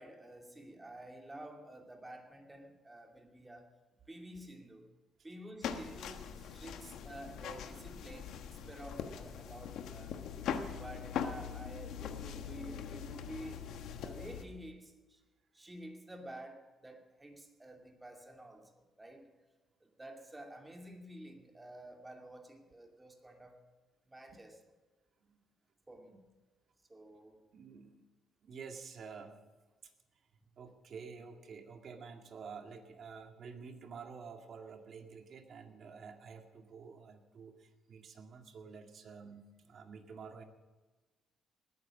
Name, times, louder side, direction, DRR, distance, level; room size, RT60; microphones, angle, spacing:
voice 1, 0.0-3.7 4.1-4.9 5.2-10.2 10.8-13.6 14.0-15.2 15.5-19.3 19.8-23.6 24.1-24.6 25.9-26.2 26.9-27.4, right 1 dB, 15° right, 3 dB, 2.5 m, -50 dB
sound 1, 5.6-14.4, left 7 dB, 80° left, 1.2 m, -42 dB
voice 2, 27.5-28.0 28.4-29.4 29.8-29.9 30.6-40.4, right 5 dB, 60° right, 4 dB, 2.0 m, -50 dB
19.5 x 9.5 x 6.4 m, 1.2 s
cardioid pair, 90°, 0 cm